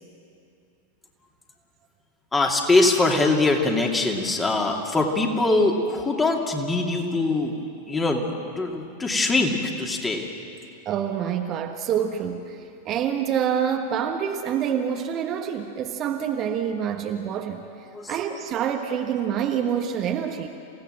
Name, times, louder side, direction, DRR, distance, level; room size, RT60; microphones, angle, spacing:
voice 1, 2.3-7.5 7.9-10.3 17.9-18.1, left 2 dB, 15° left, 1 dB, 2.7 m, -22 dB
voice 2, 10.8-17.7 18.1-20.5, right 8 dB, 35° right, 4 dB, 1.3 m, -27 dB
27.5 x 17.0 x 7.7 m, 2.6 s
figure-of-eight pair, 90°, 0 cm